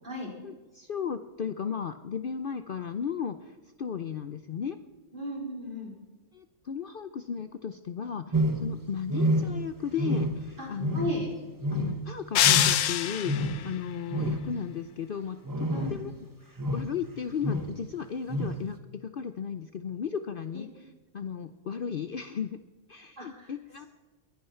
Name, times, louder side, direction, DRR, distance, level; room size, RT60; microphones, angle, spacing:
voice 1, 0.4-4.8 6.3-11.0 11.7-16.1 16.4-22.6 22.9-23.9, left 7 dB, 55° left, 10 dB, 0.7 m, -35 dB
voice 2, 5.1-5.9 10.6-10.7 10.9-11.3 15.7-15.9 20.5-20.6 23.2-23.5, equal, 40° right, -2 dB, 4.3 m, -35 dB
sound 1, 8.3-8.8 9.1-9.7 10.0-10.5 10.8-11.3 11.6-12.1 12.4-12.9 13.3-13.6 14.1-14.5 15.5-16.0 16.6-16.9 17.4-17.7 18.3-18.6, equal, 15° right, 1.1 m, -28 dB
sound 2, 12.3-13.6, left 11 dB, 75° left, 1.0 m, -24 dB
21.5 x 10.5 x 4.5 m, 1.2 s
omnidirectional pair, 1.3 m